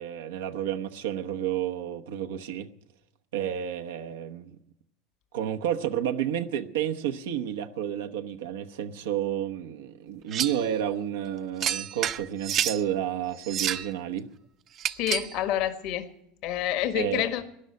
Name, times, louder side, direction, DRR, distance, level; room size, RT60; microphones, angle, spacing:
voice 1, 0.0-2.7 3.3-4.6 5.3-14.3 16.9-17.2, right 10 dB, 85° right, 0.9 m, -31 dB
sound 1, 10.3-10.7 11.6-12.8 13.4-13.9 14.8-15.4, right 9 dB, 45° right, 0.7 m, -29 dB
voice 2, 15.0-16.1 16.4-17.4, left 11 dB, 65° left, 1.4 m, -27 dB
13.0 x 10.0 x 9.4 m
supercardioid pair, 100°, 0 cm